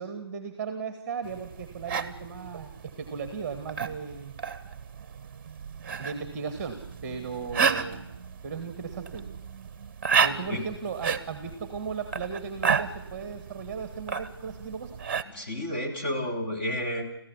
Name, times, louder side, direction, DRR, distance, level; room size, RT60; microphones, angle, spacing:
voice 1, 0.0-4.3 6.0-8.1 8.4-9.3 10.2-15.0, right 5 dB, 15° right, 9 dB, 1.8 m, -36 dB
sound 1, 1.2-15.2, right 6 dB, 30° right, 1.2 m, -32 dB
voice 2, 15.2-17.2, equal, 25° left, 2 dB, 3.4 m, -31 dB
27.0 x 15.0 x 9.9 m, 0.80 s
figure-of-eight pair, 155°, 13 cm